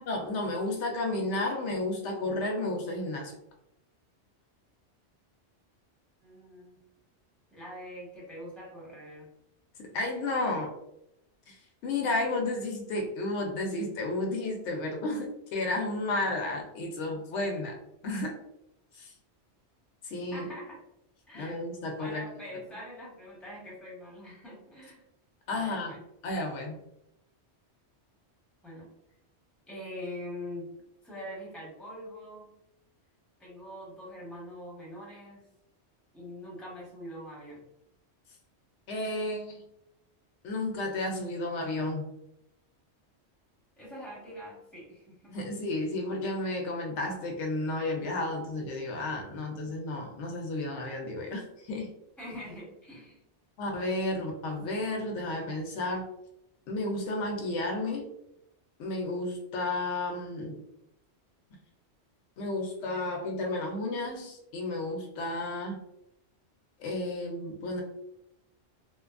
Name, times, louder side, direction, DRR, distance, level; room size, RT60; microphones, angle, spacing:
voice 1, 0.0-3.3 9.8-10.7 11.5-17.8 18.0-18.3 18.9-19.1 20.0-20.5 21.3-22.2 25.5-25.9 26.2-26.8 38.9-39.6 40.4-42.1 45.3-51.9 53.6-56.1 56.7-58.1 58.8-60.6 62.4-65.8 66.8-67.8, left 2 dB, 85° left, 1 dB, 0.9 m, -32 dB
voice 2, 6.2-6.8 7.5-9.3 20.3-20.8 21.3-21.6 22.0-25.0 25.5-26.0 28.6-28.9 29.7-30.7 31.0-32.5 33.4-35.5 36.1-37.6 43.8-45.3 52.2-53.2, left 1 dB, ahead, -5 dB, 0.9 m, -43 dB
2.7 x 2.2 x 2.4 m, 0.82 s
omnidirectional pair, 1.2 m